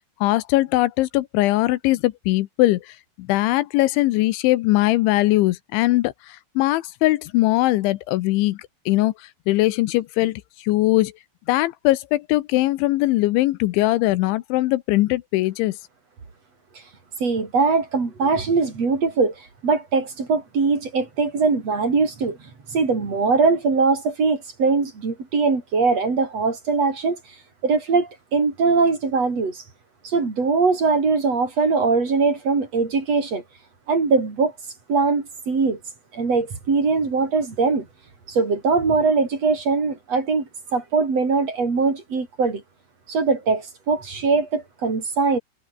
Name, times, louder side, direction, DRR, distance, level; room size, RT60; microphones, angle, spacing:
voice 1, 0.2-9.1 9.5-11.1 11.5-15.8, left 18 dB, 80° left, 3.0 m, -21 dB
voice 2, 17.2-19.3 19.6-22.4 22.7-27.2 27.6-29.6 30.0-33.4 33.9-34.5 34.9-35.8 36.1-37.9 38.3-40.4 40.7-42.6 43.1-45.4, right 4 dB, 35° right, 5.0 m, -21 dB
omnidirectional pair, 5.7 m